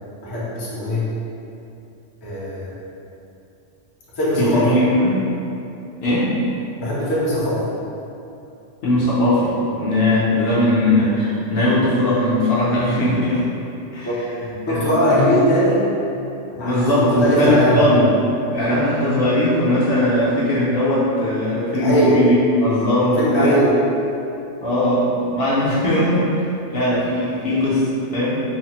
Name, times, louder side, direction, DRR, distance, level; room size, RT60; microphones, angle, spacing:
voice 1, 0.2-1.0 2.2-2.7 4.2-4.7 6.8-7.6 14.0-14.2 14.7-15.8 16.6-17.8 18.7-18.8 21.8-22.1 23.2-23.7, equal, 30° left, -9 dB, 0.5 m, -20 dB
voice 2, 4.4-5.2 6.0-6.3 8.8-13.4 13.9-14.1 14.4-15.0 16.6-18.1 18.5-23.6 24.6-26.3 26.7-28.4, left 1 dB, 60° left, -9 dB, 0.7 m, -19 dB
3.3 x 2.0 x 2.9 m, 2.8 s
omnidirectional pair, 1.2 m